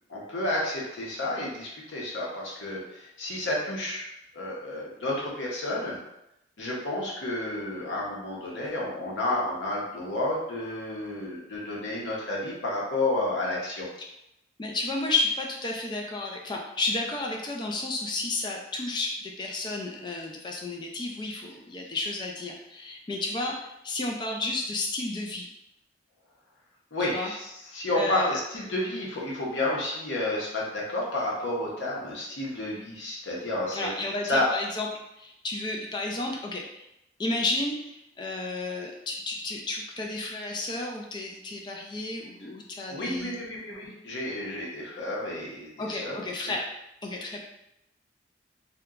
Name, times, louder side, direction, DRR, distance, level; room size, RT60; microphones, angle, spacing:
voice 1, 0.1-4.1 4.3-6.0 6.6-13.9 26.9-27.4 27.7-34.5 42.9-46.2, left 1 dB, 85° left, -4 dB, 0.8 m, -31 dB
voice 2, 14.6-25.5 27.1-27.3 27.9-28.4 33.7-34.9 35.2-36.8 37.2-43.4 45.8-46.7 47.0-47.4, left 2 dB, 25° left, 1 dB, 0.3 m, -32 dB
2.8 x 2.2 x 2.3 m, 0.83 s
head